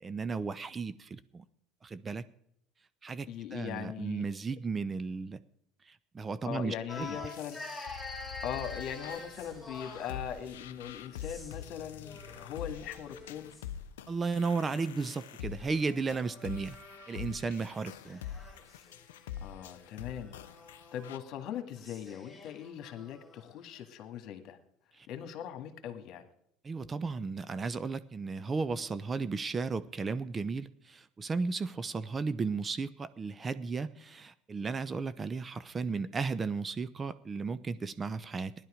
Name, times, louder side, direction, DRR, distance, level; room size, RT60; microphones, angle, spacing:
voice 1, 0.0-1.4 1.8-2.2 3.0-5.4 5.9-7.2 14.1-16.8 17.1-18.2 25.0-25.1 26.6-38.5, right 4 dB, 30° right, 13 dB, 0.7 m, -34 dB
voice 2, 3.3-4.2 6.5-7.8 8.4-13.5 19.4-20.4 20.9-24.6 25.1-26.2, left 9 dB, 55° left, 7 dB, 1.9 m, -40 dB
sound 1, 6.9-10.3 11.1-11.7 12.0-13.7 14.7-17.5 17.9-23.5, left 2 dB, 10° left, 2.0 m, -48 dB
sound 2, 7.0-21.2, left 10 dB, 80° left, 0.6 m, -45 dB
sound 3, 8.4-13.6, right 6 dB, 75° right, 1.9 m, -60 dB
16.5 x 10.5 x 5.1 m, 0.73 s
hypercardioid pair, 70°, 0 cm